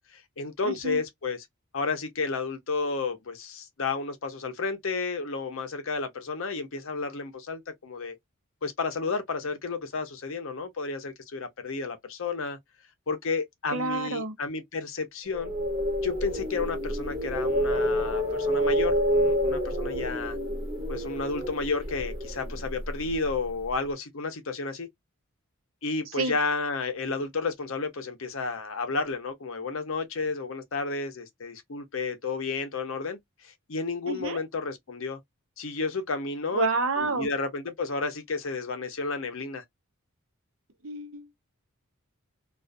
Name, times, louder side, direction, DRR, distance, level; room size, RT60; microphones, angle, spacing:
voice 1, 0.1-1.5 1.7-8.2 8.6-12.6 13.1-15.5 16.0-20.4 20.9-24.9 25.8-35.2 35.6-36.7 37.0-39.6, left 4 dB, 60° left, 0.6 m, -32 dB
voice 2, 0.6-1.0 13.7-14.3 26.2-26.3 34.1-34.4 36.5-37.3 40.8-41.4, right 3 dB, 65° right, 0.7 m, -29 dB
sound 1, 15.3-23.4, equal, 30° right, 1.1 m, -28 dB
2.4 x 2.3 x 2.4 m
head